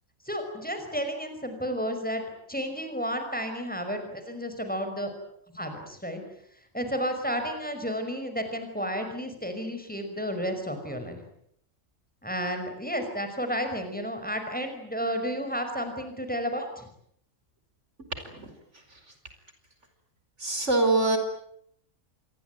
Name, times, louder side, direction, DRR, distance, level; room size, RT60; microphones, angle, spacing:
voice 1, 0.2-2.2 2.5-5.1 5.5-6.2 6.7-11.2 12.2-16.9, equal, 5° left, 6 dB, 5.5 m, -32 dB
voice 2, 20.4-21.2, right 2 dB, 60° right, 7 dB, 5.1 m, -24 dB
27.5 x 22.5 x 9.3 m, 0.70 s
omnidirectional pair, 1.4 m